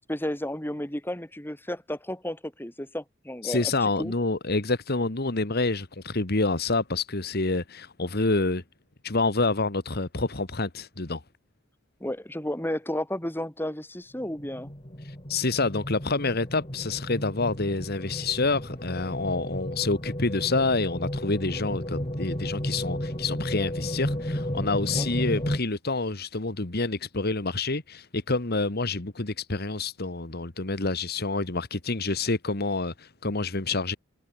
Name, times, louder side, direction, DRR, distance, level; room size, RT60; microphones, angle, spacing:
voice 1, 0.1-4.1 12.0-14.7 24.9-25.1, left 1 dB, 10° left, 3.8 m, -33 dB
voice 2, 3.4-8.6 9.0-11.2 15.0-34.0, left 3 dB, 50° left, 1.7 m, -28 dB
sound 1, 14.2-25.6, equal, 30° left, 6.0 m, -33 dB
head